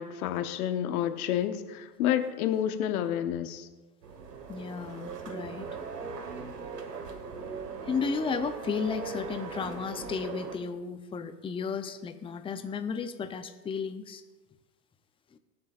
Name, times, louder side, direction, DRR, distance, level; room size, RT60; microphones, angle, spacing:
voice 1, 0.0-3.7, left 10 dB, 65° left, 9 dB, 1.1 m, -29 dB
sound 1, 4.0-10.6, right 5 dB, 90° right, 1.5 m, -39 dB
voice 2, 4.5-5.7 7.8-14.2 15.3-15.4, left 6 dB, 10° left, 9 dB, 0.6 m, -34 dB
22.5 x 7.8 x 2.5 m, 1.2 s
hypercardioid pair, 100°, 47 cm